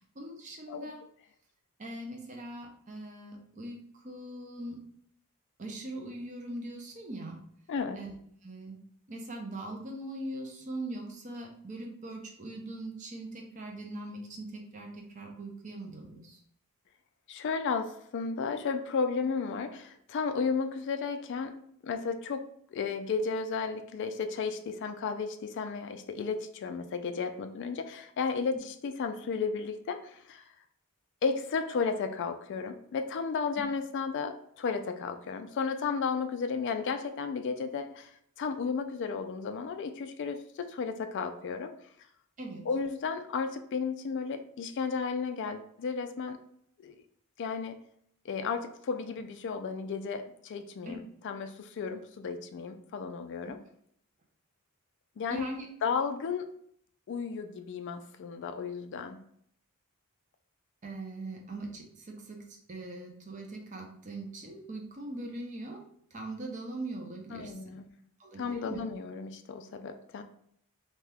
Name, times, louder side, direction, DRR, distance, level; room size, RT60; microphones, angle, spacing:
voice 1, 0.1-1.0 1.8-4.8 5.6-7.4 7.9-8.1 8.4-8.8 9.1-16.4 42.4-42.7 50.8-51.0 55.3-55.7 60.8-65.8 66.1-67.6 68.2-68.8, right 1 dB, 35° right, 1 dB, 0.6 m, -41 dB
voice 2, 7.7-8.0 17.3-21.5 21.8-30.4 31.2-41.7 42.7-46.4 46.8-47.0 47.4-47.8 48.2-53.6 55.2-55.5 55.8-56.5 57.1-59.2 67.3-67.9 68.4-70.2, left 5 dB, 55° left, 7 dB, 0.3 m, -33 dB
2.7 x 2.3 x 3.3 m, 0.67 s
head